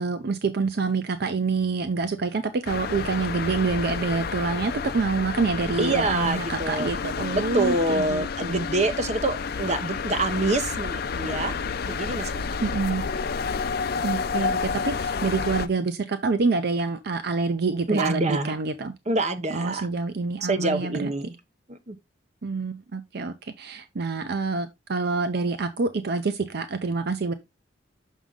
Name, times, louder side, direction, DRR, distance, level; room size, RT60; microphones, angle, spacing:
voice 1, 0.0-8.7 12.6-13.0 14.0-14.6 14.8-18.9 19.5-21.1 22.4-27.3, right 4 dB, 60° right, 0.6 m, -27 dB
sound 1, 2.7-15.7, left 5 dB, 55° left, 0.5 m, -30 dB
voice 2, 5.8-7.0 7.3-11.6 11.8-12.6 17.9-18.6 19.1-19.9 20.5-21.3 21.7-22.0, right 2 dB, 40° right, 0.9 m, -26 dB
6.1 x 5.5 x 3.6 m
head